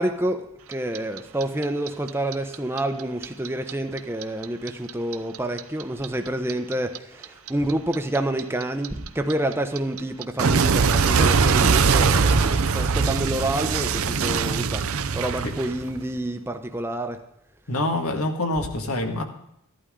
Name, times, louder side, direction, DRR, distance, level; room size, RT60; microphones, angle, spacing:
voice 1, 0.0-14.9 15.1-17.2, right 1 dB, 10° right, 0.7 m, -28 dB
Clock, 0.7-3.7 4.0-7.0 7.2-16.1, right 5 dB, 75° right, 0.7 m, -21 dB
voice 2, 17.7-19.2, left 2 dB, 85° left, 1.8 m, -26 dB
15.0 x 11.5 x 3.7 m
head